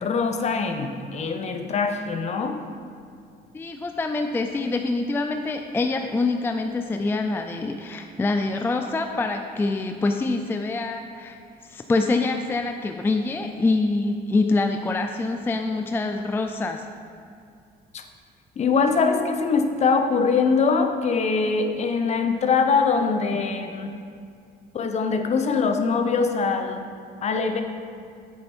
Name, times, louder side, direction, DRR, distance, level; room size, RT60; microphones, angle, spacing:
voice 1, 0.0-2.6 17.9-18.0 18.6-23.9 24.7-26.8 27.2-27.6, left 5 dB, 40° left, 5 dB, 0.7 m, -23 dB
voice 2, 3.5-11.4 11.6-16.8, left 3 dB, 15° left, 5 dB, 0.3 m, -25 dB
7.9 x 6.6 x 4.4 m, 2.3 s
cardioid pair, 110°, 17 cm